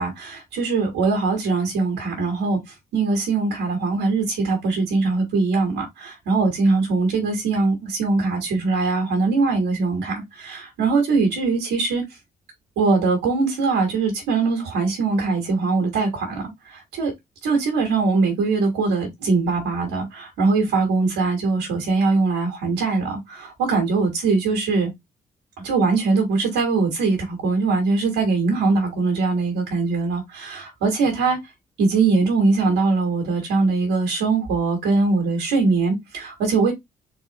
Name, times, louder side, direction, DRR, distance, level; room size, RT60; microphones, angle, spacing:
voice 1, 0.0-2.6 2.9-12.0 12.8-16.5 17.0-17.1 17.4-24.9 25.6-31.4 31.8-36.7, right 3 dB, 75° right, 1.8 m, -21 dB
4.1 x 3.1 x 2.9 m
hypercardioid pair, 45°, 19 cm